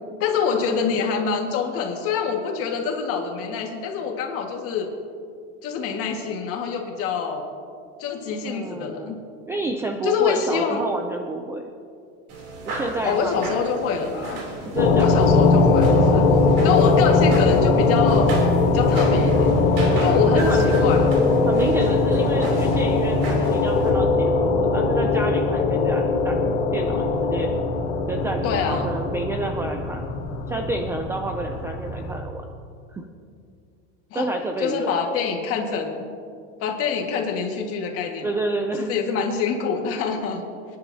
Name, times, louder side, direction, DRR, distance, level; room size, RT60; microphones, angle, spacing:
voice 1, 0.2-4.9 5.6-7.4 8.0-9.2 10.0-10.9 13.0-14.4 15.0-16.4 16.6-18.3 18.7-19.6 20.0-21.2 28.4-28.9 34.1-34.3 34.6-36.0 36.6-38.3 38.8-40.4, left 6 dB, 40° left, 2 dB, 1.8 m, -25 dB
voice 2, 8.4-9.1 9.5-11.6 12.7-13.7 14.0-14.3 14.7-15.2 16.5-16.9 19.9-20.8 21.4-26.4 26.7-27.5 28.1-30.1 30.5-32.5 32.9-33.0 34.1-35.1 38.2-38.9 39.2-39.3, right 2 dB, 10° right, 3 dB, 0.3 m, -29 dB
sound 1, 12.3-23.9, right 1 dB, 45° right, 3.2 m, -33 dB
sound 2, 14.8-32.2, left 3 dB, 85° left, 2.0 m, -20 dB
25.5 x 10.5 x 2.8 m, 2.3 s
supercardioid pair, 150°, 34 cm